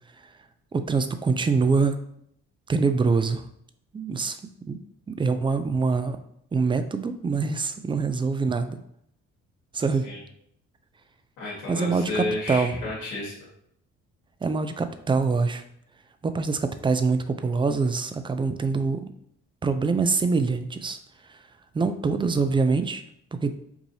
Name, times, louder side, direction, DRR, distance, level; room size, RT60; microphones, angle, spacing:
voice 1, 0.7-2.0 2.7-3.5 3.9-4.4 4.7-4.8 5.1-6.2 6.5-8.8 9.7-10.1 11.7-12.8 14.4-15.6 16.2-19.1 19.6-21.0 21.3-21.4 21.7-23.0 23.3-23.5, right 4 dB, 15° right, 10 dB, 0.4 m, -24 dB
voice 2, 11.4-13.5, left 2 dB, 75° left, -5 dB, 1.5 m, -32 dB
4.7 x 2.6 x 2.7 m, 0.71 s
hypercardioid pair, 50°, 34 cm